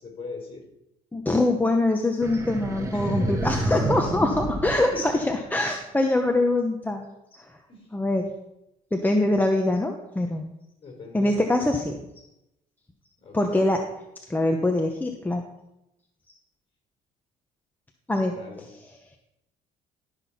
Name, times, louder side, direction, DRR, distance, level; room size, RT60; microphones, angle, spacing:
voice 1, 0.0-0.6 2.9-3.4 3.7-3.8 4.9-5.1 7.7-7.9 10.8-11.7 13.2-13.9 18.3-18.7, left 3 dB, 35° left, 2 dB, 4.0 m, -40 dB
voice 2, 1.1-7.0 7.3-7.5 7.9-8.3 8.9-10.5 11.1-12.0 13.3-13.8 14.3-15.4 18.1-19.0, left 2 dB, 10° left, 3 dB, 0.9 m, -24 dB
sound 1, 2.2-5.7, right 2 dB, 20° right, 1.6 m, -29 dB
12.0 x 6.3 x 5.8 m, 0.89 s
cardioid pair, 110°, 17 cm